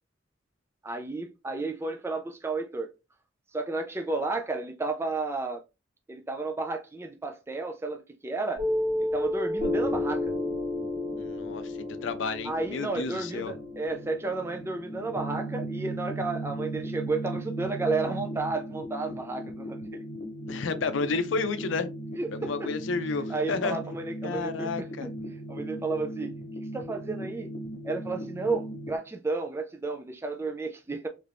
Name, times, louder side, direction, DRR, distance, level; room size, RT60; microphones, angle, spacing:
voice 1, 0.8-2.9 3.5-5.6 6.1-8.6 9.1-10.3 12.4-20.0 22.2-22.7 23.3-25.1 25.5-26.3 26.7-27.5 27.8-31.1, right 3 dB, 15° right, 0.3 m, -32 dB
Piano, 8.6-15.6, left 2 dB, 50° right, 1.4 m, -32 dB
sound 1, 10.4-29.0, right 1 dB, 45° left, 1.0 m, -38 dB
voice 2, 11.2-13.5 20.5-21.9 22.3-23.8 24.2-25.1, left 4 dB, 85° left, 0.5 m, -31 dB
3.2 x 2.5 x 3.3 m
head